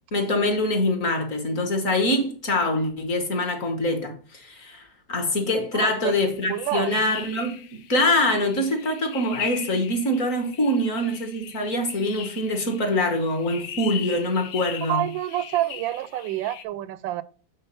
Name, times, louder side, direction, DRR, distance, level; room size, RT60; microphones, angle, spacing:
voice 1, 0.1-15.1, left 1 dB, 50° left, 1.5 m, -24 dB
voice 2, 5.7-6.1 6.5-6.9 14.9-17.2, right 13 dB, 90° right, 1.3 m, -28 dB
sound 1, 6.1-16.6, left 9 dB, 85° left, 1.5 m, -39 dB
8.0 x 3.6 x 5.5 m
omnidirectional pair, 2.0 m